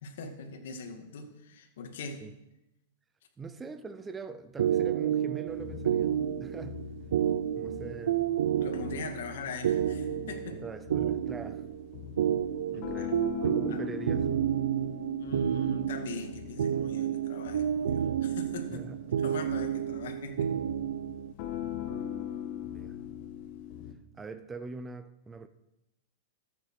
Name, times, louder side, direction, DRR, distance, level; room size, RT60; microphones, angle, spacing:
voice 1, 0.0-2.2 8.6-10.6 12.7-13.1 13.7-13.8 15.2-18.9 19.2-20.5, left 3 dB, 70° left, 2.1 m, -41 dB
voice 2, 3.4-6.8 7.6-8.4 10.5-11.6 12.7-14.3 18.7-19.1 22.7-23.0 24.1-25.5, right 4 dB, 15° right, 0.7 m, -43 dB
sound 1, 4.6-21.3, right 10 dB, 80° right, 0.5 m, -30 dB
sound 2, 5.5-23.9, left 10 dB, 50° left, 1.7 m, -42 dB
13.5 x 8.1 x 4.8 m
hypercardioid pair, 140°, 0 cm